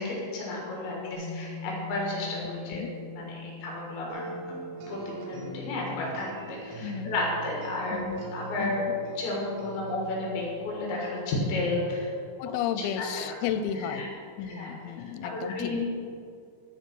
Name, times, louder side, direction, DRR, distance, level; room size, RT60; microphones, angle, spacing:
voice 1, 0.0-4.3 4.9-8.0 8.3-8.8 9.2-12.1 12.8-13.4 13.8-14.1 14.5-14.7 15.3-15.9, left 2 dB, 70° left, -2 dB, 3.6 m, -32 dB
sound 1, 1.1-10.6, left 3 dB, 45° left, 2.3 m, -45 dB
sound 2, 4.1-11.6, right 3 dB, 75° right, 2.3 m, -42 dB
voice 2, 6.8-7.1 7.9-8.2 8.6-8.9 12.4-14.1 14.4-15.8, left 8 dB, 90° left, 10 dB, 3.3 m, -33 dB
12.0 x 4.9 x 6.0 m, 2.4 s
omnidirectional pair, 5.9 m